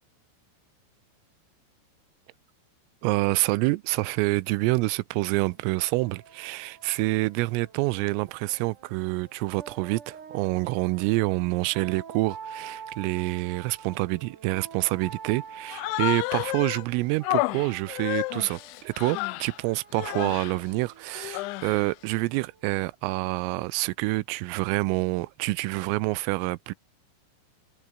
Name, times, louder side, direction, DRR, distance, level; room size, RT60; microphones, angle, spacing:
voice 1, 3.0-26.7, right 22 dB, 85° right, 3.3 m, -27 dB
sound 1, 5.2-22.7, right 7 dB, 40° right, 4.1 m, -47 dB
Human voice, 15.7-16.8 17.2-19.6 19.9-20.6 21.1-21.9, left 22 dB, 85° left, 2.7 m, -31 dB
omnidirectional pair, 6.0 m